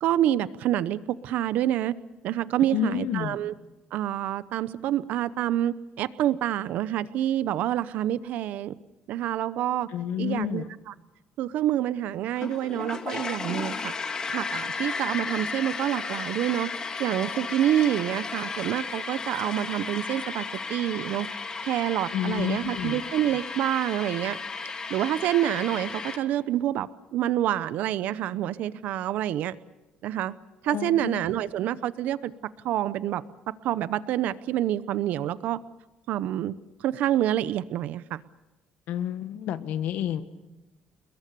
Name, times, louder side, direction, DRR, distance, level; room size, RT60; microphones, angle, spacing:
voice 1, 0.0-1.9 2.2-3.5 3.9-8.8 9.1-9.9 10.2-10.9 11.4-13.9 14.3-16.7 17.0-20.4 20.7-21.3 21.6-24.4 24.9-29.5 30.0-30.3 30.6-32.3 32.6-35.6 36.1-36.5 36.8-38.2, right 12 dB, 70° right, 16 dB, 0.8 m, -27 dB
voice 2, 2.7-3.4 9.9-10.6 22.1-23.0 30.7-31.2 38.9-40.2, left 10 dB, 75° left, 11 dB, 1.5 m, -30 dB
sound 1, 12.4-26.2, left 4 dB, 25° left, 2.1 m, -34 dB
29.0 x 21.5 x 6.9 m, 1.0 s
cardioid pair, 160°, 3 cm